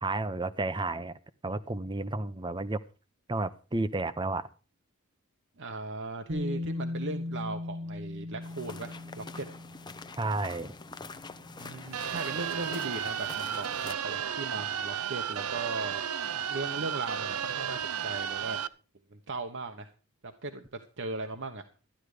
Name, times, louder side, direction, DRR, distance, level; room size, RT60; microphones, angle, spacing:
voice 1, 0.0-1.1 1.4-2.8 3.3-4.5 10.2-10.7, right 2 dB, 20° right, 0.7 m, -31 dB
voice 2, 5.6-9.5 11.6-16.0 16.4-18.6 19.1-19.9 20.2-21.6, right 3 dB, 55° right, 1.1 m, -38 dB
Bass guitar, 6.3-12.3, left 2 dB, 40° right, 1.6 m, -39 dB
sound 1, 8.4-13.9, left 4 dB, 20° left, 0.7 m, -45 dB
sound 2, 11.9-18.7, right 8 dB, 90° right, 0.7 m, -33 dB
13.0 x 11.0 x 5.0 m
head